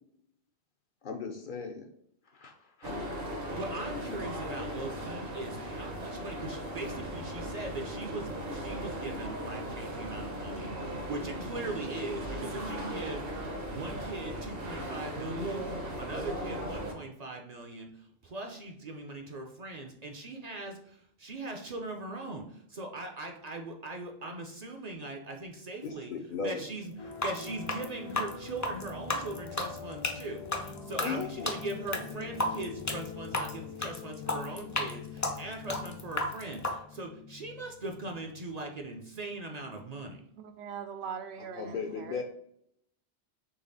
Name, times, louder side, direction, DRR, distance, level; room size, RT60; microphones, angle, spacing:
voice 1, 1.0-1.9 2.3-2.9 25.8-26.6 31.0-31.5 41.5-42.2, left 5 dB, 60° left, 3 dB, 0.7 m, -37 dB
sound 1, 2.8-16.9, right 1 dB, 65° right, 1.2 m, -37 dB
voice 2, 3.5-15.7 16.0-17.9 18.2-26.1 26.4-40.2, right 2 dB, 45° right, 2 dB, 0.6 m, -40 dB
sound 2, 27.0-39.0, left 6 dB, 90° left, 1.1 m, -44 dB
sound 3, 27.1-36.8, left 2 dB, 25° left, 0.4 m, -33 dB
voice 3, 40.4-42.2, right 7 dB, 85° right, 8 dB, 0.8 m, -41 dB
4.1 x 3.2 x 3.9 m, 0.70 s
omnidirectional pair, 1.1 m